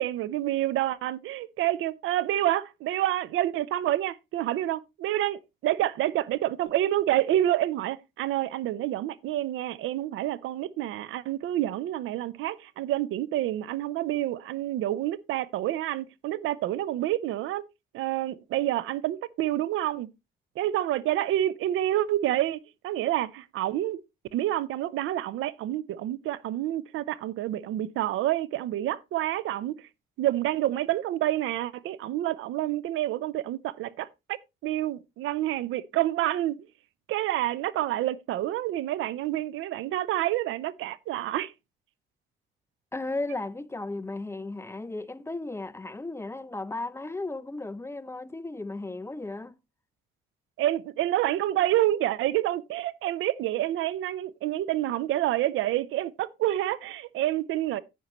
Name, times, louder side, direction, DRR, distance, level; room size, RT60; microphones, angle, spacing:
voice 1, 0.0-17.6 17.9-20.1 20.6-22.6 22.8-24.0 24.3-29.9 30.2-36.6 37.1-41.5 50.6-57.8, right 14 dB, 85° right, 0.6 m, -28 dB
voice 2, 42.9-49.6, left 2 dB, 15° left, 0.6 m, -35 dB
11.0 x 8.8 x 3.0 m
cardioid pair, 90°, 20 cm